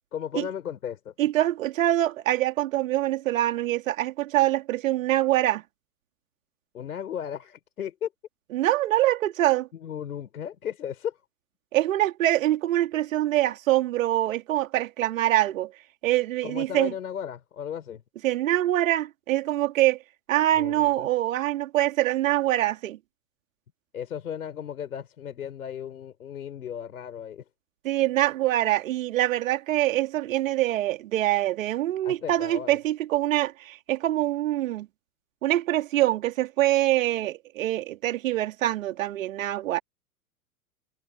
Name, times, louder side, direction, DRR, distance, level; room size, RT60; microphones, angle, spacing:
voice 1, 0.1-1.1 6.7-8.1 9.7-11.2 16.4-18.0 20.5-21.1 23.9-27.4 32.0-32.8, left 9 dB, 70° left, 5.1 m, -35 dB
voice 2, 1.2-5.6 8.5-9.7 11.7-15.7 16.0-16.9 18.2-20.0 20.3-23.0 27.8-34.9 35.4-39.8, right 14 dB, 60° right, 2.7 m, -24 dB
figure-of-eight pair, 100°, 46 cm